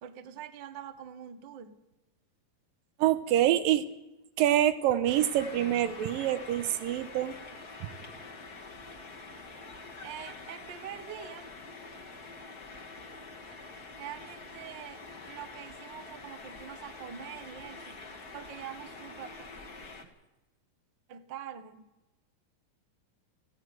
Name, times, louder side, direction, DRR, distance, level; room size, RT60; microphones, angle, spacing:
voice 1, 0.0-1.8 10.0-11.5 14.0-18.0 18.3-19.5 21.1-21.9, right 10 dB, 55° right, 9 dB, 1.3 m, -44 dB
voice 2, 3.0-3.9 4.4-7.4, right 12 dB, 80° right, 11 dB, 2.6 m, -26 dB
sound 1, 5.1-20.0, left 3 dB, 35° left, 1.8 m, -46 dB
17.5 x 15.5 x 9.5 m, 0.99 s
omnidirectional pair, 4.1 m